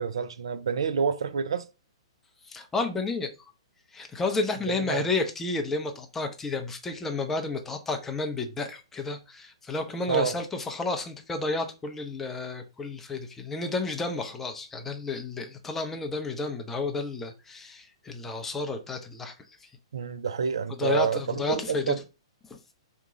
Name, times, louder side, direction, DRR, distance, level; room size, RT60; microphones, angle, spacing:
voice 1, 0.0-1.7 4.7-5.0 10.1-10.4 19.9-22.0, right 6 dB, 65° right, 0.4 m, -28 dB
voice 2, 2.4-3.3 3.9-19.3 19.6-19.7 20.8-21.9, left 3 dB, 10° left, 0.5 m, -31 dB
2.9 x 2.2 x 3.7 m
figure-of-eight pair, 115°, 3 cm